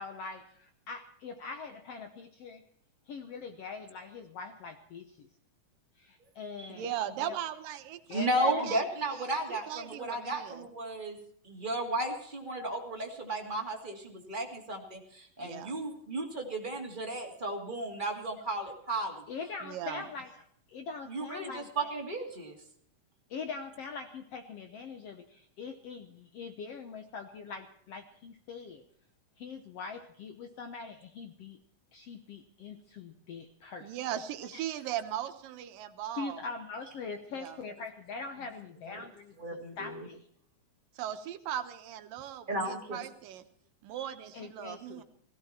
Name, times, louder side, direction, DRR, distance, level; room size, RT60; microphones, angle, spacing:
voice 1, 0.0-2.6 3.1-5.3 6.0-6.9 7.2-7.4 8.1-8.7 19.0-20.3 20.7-21.7 23.3-28.8 29.4-31.6 31.9-33.9 36.1-40.2 44.3-45.0, left 4 dB, 65° left, 7 dB, 1.6 m, -42 dB
voice 2, 6.7-8.3 8.6-10.7 15.4-15.7 19.6-20.1 33.8-36.4 37.4-37.6 41.0-43.5 43.8-45.0, right 11 dB, 85° right, 9 dB, 2.7 m, -38 dB
voice 3, 8.1-11.2 11.4-19.2 21.1-22.5 38.9-39.0 39.4-40.0 42.5-43.0, right 1 dB, 15° right, 0 dB, 2.3 m, -34 dB
17.0 x 17.0 x 4.4 m, 0.62 s
omnidirectional pair, 3.8 m